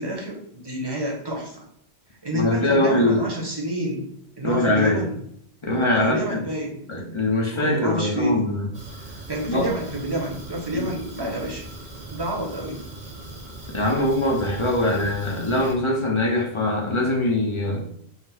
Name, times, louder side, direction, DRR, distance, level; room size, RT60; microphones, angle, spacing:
voice 1, 0.0-1.7 2.2-4.1 4.4-5.2 6.0-6.8 7.5-8.4 9.3-11.7 12.1-12.9, right 1 dB, 25° right, -1 dB, 0.9 m, -29 dB
voice 2, 2.3-3.2 4.4-5.0 5.6-6.4 6.9-8.7 9.5-9.7 10.7-10.9 13.7-17.9, left 1 dB, 35° left, -1 dB, 0.7 m, -22 dB
Fire, 8.7-15.7, right 2 dB, 45° right, 0.9 m, -39 dB
4.0 x 2.1 x 4.3 m, 0.67 s
omnidirectional pair, 1.1 m